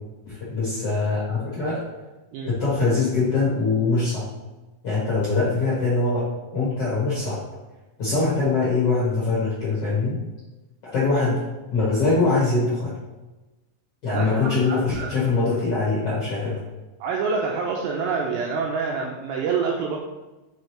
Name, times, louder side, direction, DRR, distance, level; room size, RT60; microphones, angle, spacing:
voice 1, 0.2-1.8 2.5-4.2 4.8-6.3 6.5-7.4 8.0-10.2 10.9-11.4 11.7-12.9 14.0-16.6, left 3 dB, 65° left, -9 dB, 1.5 m, -23 dB
voice 2, 14.1-15.1 17.0-20.0, right 5 dB, 90° right, -1 dB, 2.4 m, -27 dB
6.3 x 5.2 x 3.2 m, 1.1 s
omnidirectional pair, 5.5 m